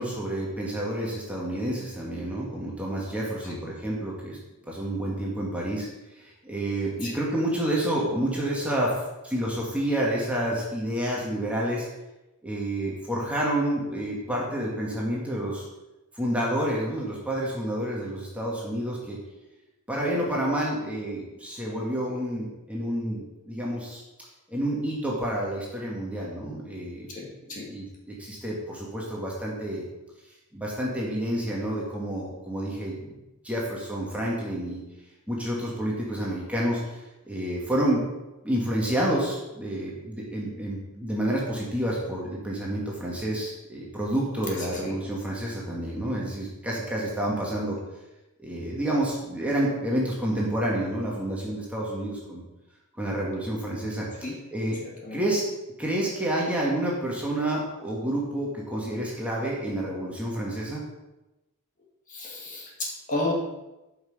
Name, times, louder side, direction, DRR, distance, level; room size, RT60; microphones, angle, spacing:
voice 1, 0.0-4.4 4.7-5.9 6.2-8.9 9.2-11.9 12.4-15.6 16.1-19.2 19.9-24.0 24.5-27.1 27.7-29.8 30.5-33.1 33.4-34.8 35.3-37.0 37.3-38.0 38.4-47.8 48.4-52.4 53.0-54.8 55.1-55.4 55.8-60.8, right 1 dB, 5° right, -4 dB, 2.0 m, -29 dB
voice 2, 27.1-27.7 44.7-45.0 54.2-54.3 54.8-55.2 62.1-63.3, left 2 dB, 35° left, -3 dB, 2.4 m, -33 dB
12.5 x 6.0 x 5.0 m, 1.0 s
head